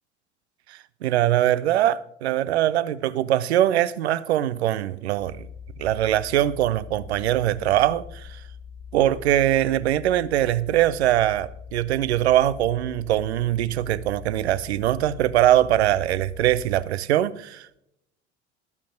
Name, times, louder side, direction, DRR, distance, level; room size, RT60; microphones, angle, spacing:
voice 1, 0.7-5.5 5.8-8.3 8.9-17.8, right 13 dB, 70° right, 0.6 m, -22 dB
sound 1, 5.2-16.9, left 7 dB, 25° left, 0.5 m, -42 dB
12.0 x 7.3 x 5.1 m
figure-of-eight pair, 70°, 34 cm